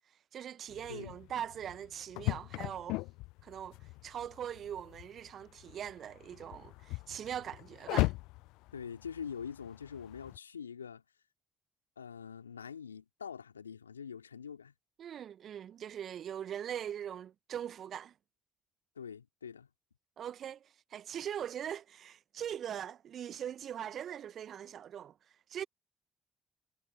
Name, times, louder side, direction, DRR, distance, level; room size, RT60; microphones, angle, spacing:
voice 1, 0.1-3.0 3.4-8.1 15.0-18.1 20.2-25.6, right 9 dB, 55° right, 0.7 m, -41 dB
sound 1, 0.7-10.4, left 22 dB, 70° left, 0.5 m, -39 dB
voice 2, 8.7-11.0 12.0-14.7 19.0-19.7, left 7 dB, 85° left, 3.7 m, -44 dB
figure-of-eight pair, 45°, 0 cm